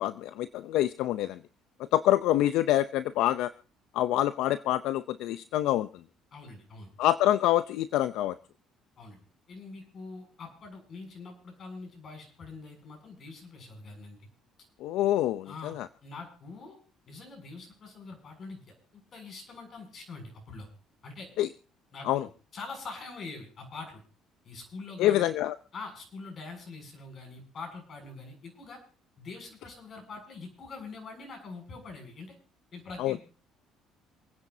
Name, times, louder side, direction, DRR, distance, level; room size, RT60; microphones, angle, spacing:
voice 1, 0.0-1.4 1.9-3.5 3.9-6.0 7.0-8.4 14.8-15.9 21.4-21.5 22.0-22.3 25.0-25.5 33.0-33.2, left 13 dB, 75° left, 13 dB, 0.6 m, -26 dB
voice 2, 6.3-6.9 9.0-14.2 15.5-15.7 16.0-16.8 17.1-18.6 18.9-20.7 21.0-21.3 21.9-22.1 22.5-24.0 24.4-25.3 25.7-28.8 29.2-32.3 32.7-33.2, left 3 dB, 50° left, 3 dB, 7.2 m, -44 dB
28.0 x 9.9 x 2.8 m, 0.39 s
supercardioid pair, 80°, 0 cm